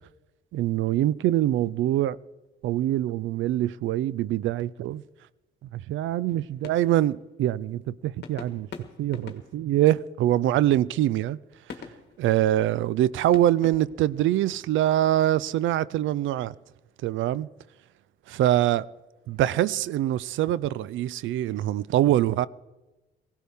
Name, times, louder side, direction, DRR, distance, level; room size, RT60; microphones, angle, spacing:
voice 1, 0.5-2.2 2.6-5.0 5.7-8.7 9.0-11.4 12.2-16.5 17.0-17.5 18.3-18.9 19.3-22.5, right 13 dB, 75° right, 0.4 m, -24 dB
sound 1, 6.2-7.8 8.2-13.0 13.3-14.9, left 6 dB, 60° left, 1.6 m, -45 dB
19.5 x 16.5 x 3.5 m
cardioid pair, 90°, 20 cm